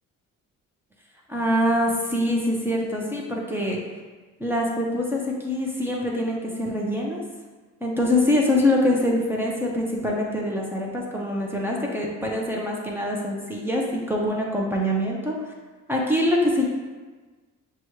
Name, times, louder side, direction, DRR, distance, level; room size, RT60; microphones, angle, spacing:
voice 1, 1.3-3.8 4.4-7.2 7.8-15.3 15.9-16.7, left 1 dB, 5° right, -3 dB, 0.7 m, -24 dB
6.1 x 2.3 x 3.0 m, 1.3 s
cardioid pair, 90°, 30 cm